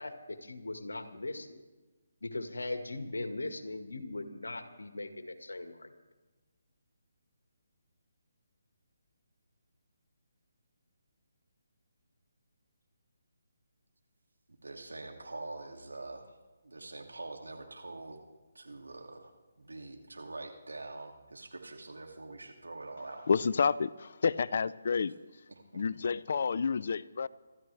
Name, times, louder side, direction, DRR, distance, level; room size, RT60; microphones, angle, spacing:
voice 1, 0.0-1.6 2.2-5.9, left 2 dB, 90° left, 1.7 m, -39 dB
voice 2, 14.6-16.4 16.6-18.2 18.5-23.2 25.5-25.8, right 2 dB, 90° right, 2.5 m, -45 dB
voice 3, 23.3-25.1 25.7-27.3, left 5 dB, 55° left, 0.5 m, -29 dB
25.0 x 13.5 x 3.4 m
figure-of-eight pair, 150°, 0 cm